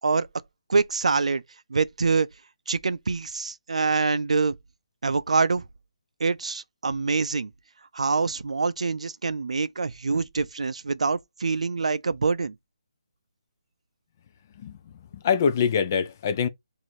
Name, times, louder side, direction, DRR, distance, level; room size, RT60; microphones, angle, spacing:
voice 1, 0.7-1.4 1.7-2.3 2.7-4.6 5.0-5.6 6.2-7.5 7.9-12.5, right 4 dB, 85° right, 0.4 m, -25 dB
voice 2, 14.6-16.5, left 6 dB, 25° left, 0.5 m, -25 dB
3.1 x 2.6 x 4.2 m
hypercardioid pair, 175°, 3 cm